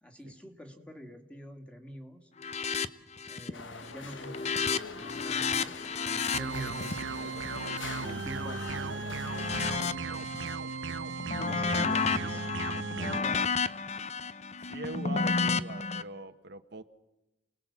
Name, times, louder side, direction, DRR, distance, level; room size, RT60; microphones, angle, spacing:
voice 1, 0.0-2.3 3.3-7.1 8.0-9.1 11.4-13.5, equal, 5° left, 4 dB, 2.2 m, -46 dB
sound 1, 2.4-2.9 3.2-3.6 3.9-8.7 9.2-10.6 10.9-16.0, left 5 dB, 35° left, 0.8 m, -32 dB
sound 2, 3.5-9.9, left 4 dB, 90° left, 1.4 m, -44 dB
sound 3, 6.3-13.2, right 4 dB, 85° right, 0.9 m, -36 dB
voice 2, 9.6-10.7 11.1-11.2 14.6-16.8, right 2 dB, 60° right, 8 dB, 1.1 m, -43 dB
29.5 x 20.0 x 7.4 m, 1.0 s
head